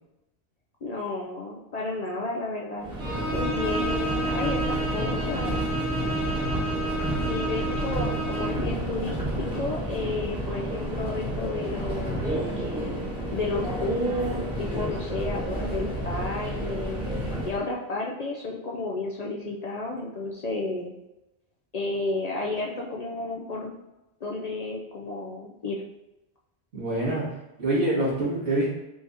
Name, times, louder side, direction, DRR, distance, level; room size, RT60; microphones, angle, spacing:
voice 1, 0.8-2.9 3.3-5.6 7.2-12.6 13.3-17.1 17.4-20.9 21.7-23.7 24.2-25.8, left 2 dB, 50° left, -2 dB, 0.5 m, -32 dB
Subway metro underground, 2.8-17.6, right 1 dB, 5° right, 1.1 m, -30 dB
Bowed string instrument, 3.0-8.7, right 2 dB, 55° right, 1.2 m, -31 dB
voice 2, 26.7-27.3 27.6-28.7, right 1 dB, 80° right, -7 dB, 2.0 m, -25 dB
4.6 x 2.7 x 3.5 m, 0.96 s
omnidirectional pair, 1.1 m